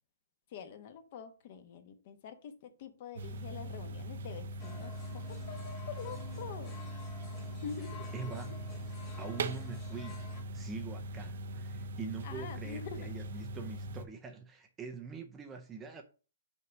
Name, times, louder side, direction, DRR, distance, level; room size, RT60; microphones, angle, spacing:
voice 1, 0.5-6.7 7.6-8.5 12.2-13.1, left 7 dB, 35° left, 1.0 m, -46 dB
sound 1, 3.2-14.1, right 1 dB, 55° right, 0.7 m, -41 dB
sound 2, 4.6-10.4, left 4 dB, 15° left, 1.7 m, -51 dB
voice 2, 8.1-8.5 9.2-10.3 10.5-16.0, right 5 dB, 10° right, 0.6 m, -44 dB
5.6 x 4.7 x 6.3 m
hypercardioid pair, 175°, 0 cm